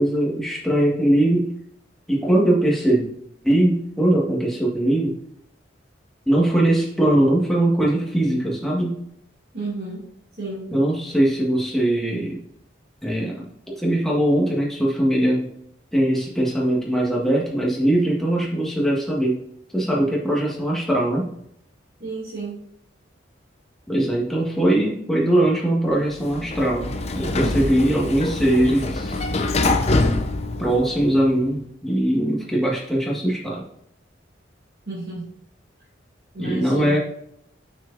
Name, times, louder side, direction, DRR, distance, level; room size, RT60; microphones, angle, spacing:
voice 1, 0.0-1.5 2.1-3.1 3.4-5.2 6.3-9.0 10.7-12.4 13.0-15.5 15.9-19.4 19.7-21.3 23.9-29.2 30.6-33.6 36.4-37.0, right 1 dB, ahead, -4 dB, 1.7 m, -21 dB
voice 2, 9.5-10.1 10.4-10.7 22.0-22.6 34.9-35.2 36.3-37.0, right 2 dB, 55° right, -9 dB, 2.5 m, -32 dB
Sliding door, 26.1-31.3, left 2 dB, 35° left, 0.6 m, -24 dB
6.9 x 6.2 x 2.7 m, 0.73 s
head